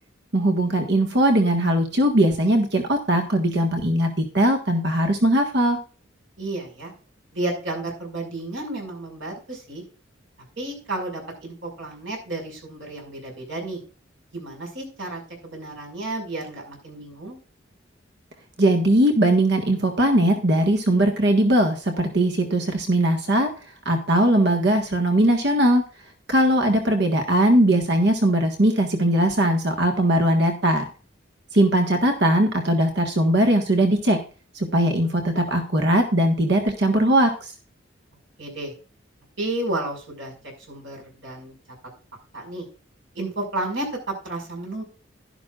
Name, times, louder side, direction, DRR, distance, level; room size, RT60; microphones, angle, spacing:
voice 1, 0.3-5.8 18.6-23.5 23.8-25.8 26.3-30.9 31.5-34.2 34.5-37.3, right 1 dB, 60° right, 4 dB, 1.6 m, -20 dB
voice 2, 6.4-6.9 7.3-9.8 10.6-13.8 14.3-17.4 26.9-27.0 38.4-38.7 39.4-40.3 40.7-41.5 42.3-42.7 43.1-43.9 44.2-44.8, right 2 dB, 80° right, 0 dB, 5.8 m, -32 dB
12.0 x 11.5 x 2.5 m, 0.36 s
head